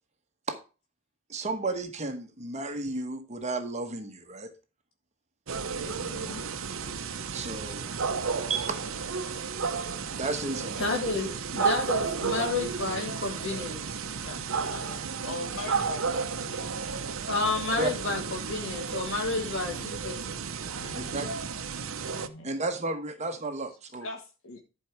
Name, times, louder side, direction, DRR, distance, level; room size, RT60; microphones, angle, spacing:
voice 1, 1.3-4.5 7.3-8.0 8.5-8.8 10.2-10.8 17.8-17.9 20.9-21.3 22.4-24.1, right 3 dB, 35° right, 6 dB, 1.1 m, -33 dB
sound 1, 5.5-22.3, right 5 dB, 75° right, 0.8 m, -33 dB
voice 2, 5.8-6.4 11.6-11.7 12.4-12.5 14.2-17.0 19.6-19.9 20.8-21.4 22.1-22.5 24.0-24.6, left 3 dB, 75° left, 3 dB, 1.3 m, -41 dB
voice 3, 10.8-14.0 17.3-20.3, left 3 dB, 60° left, 1 dB, 3.0 m, -30 dB
11.0 x 4.7 x 4.6 m, 0.32 s
head